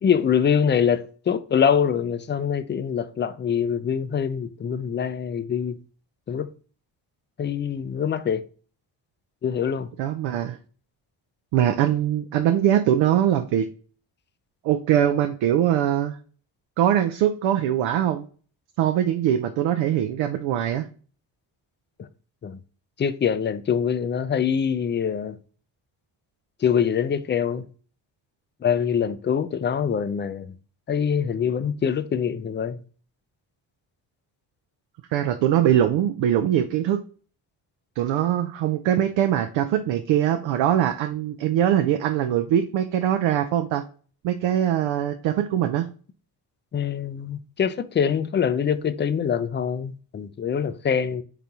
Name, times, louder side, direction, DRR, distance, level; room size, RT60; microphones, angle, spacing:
voice 1, 0.0-5.8 6.3-6.5 7.4-8.4 9.4-9.9 22.0-22.1 22.4-22.6 23.0-25.4 26.6-27.6 28.6-30.5 30.9-32.8 46.7-51.2, left 7 dB, 25° left, 0.4 m, -24 dB
voice 2, 10.0-10.6 11.5-13.7 14.6-16.2 16.8-18.3 18.8-20.9 35.1-37.0 38.0-43.8 44.2-45.9, right 11 dB, 75° right, 0.5 m, -22 dB
3.9 x 3.4 x 2.8 m
supercardioid pair, 50°, 46 cm